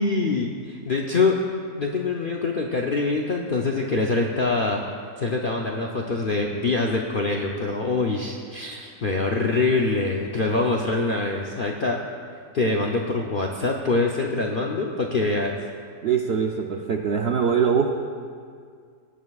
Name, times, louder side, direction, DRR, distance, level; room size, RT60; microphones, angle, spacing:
voice 1, 0.0-1.4 1.8-4.8 5.2-12.0 12.5-15.6, left 3 dB, 60° left, 0 dB, 0.5 m, -24 dB
voice 2, 16.0-18.0, right 6 dB, 70° right, 3 dB, 0.6 m, -23 dB
22.0 x 8.3 x 2.4 m, 2.1 s
omnidirectional pair, 1.7 m